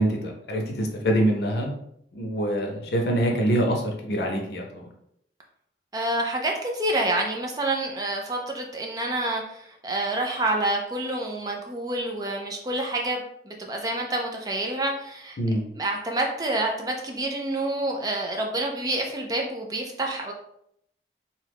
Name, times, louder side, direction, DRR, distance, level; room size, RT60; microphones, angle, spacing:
voice 1, 0.0-1.7 2.1-4.9 15.4-15.7, right 1 dB, 70° left, 1 dB, 0.6 m, -25 dB
voice 2, 5.9-15.4 15.7-20.3, right 1 dB, 20° right, 1 dB, 0.4 m, -28 dB
2.8 x 2.3 x 3.4 m, 0.72 s
head